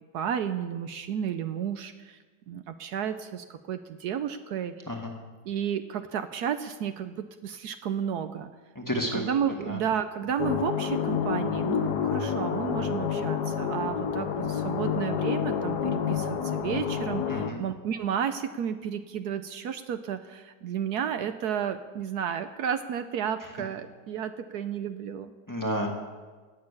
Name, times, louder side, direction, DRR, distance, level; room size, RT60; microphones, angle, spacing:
voice 1, 0.1-2.2 2.5-5.0 5.4-8.5 9.1-25.3, right 8 dB, 70° right, 9 dB, 1.2 m, -32 dB
voice 2, 8.8-9.2 9.7-9.8 17.3-17.6 25.5-25.9, equal, 10° left, 0 dB, 1.7 m, -30 dB
sound 1, 10.4-17.5, left 7 dB, 70° left, 1.5 m, -29 dB
18.0 x 6.7 x 8.3 m, 1.4 s
omnidirectional pair, 1.8 m